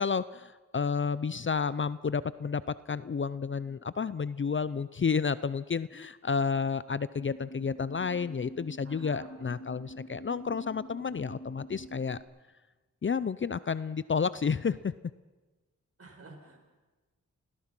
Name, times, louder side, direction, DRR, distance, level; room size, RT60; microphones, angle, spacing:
voice 1, 0.0-12.2 13.0-14.9, left 5 dB, 40° left, 17 dB, 0.6 m, -31 dB
sound 1, 7.2-12.2, equal, 55° left, 2.6 m, -46 dB
voice 2, 8.8-9.3 16.0-16.6, right 2 dB, 50° right, 1 dB, 6.1 m, -50 dB
29.0 x 17.0 x 6.1 m, 1.2 s
cardioid pair, 65°, 31 cm